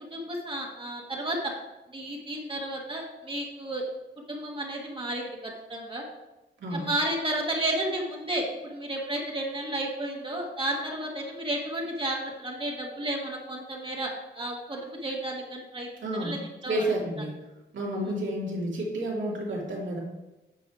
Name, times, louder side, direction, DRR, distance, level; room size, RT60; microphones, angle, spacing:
voice 1, 0.1-1.5 1.9-3.8 4.3-6.0 6.7-15.9 16.2-16.8 18.1-18.2, right 1 dB, 25° right, -1 dB, 1.4 m, -32 dB
voice 2, 16.0-16.3 16.7-17.3 17.7-20.0, right 1 dB, 85° right, -4 dB, 2.7 m, -30 dB
9.2 x 5.4 x 4.8 m, 1.0 s
wide cardioid pair, 130°, 19 cm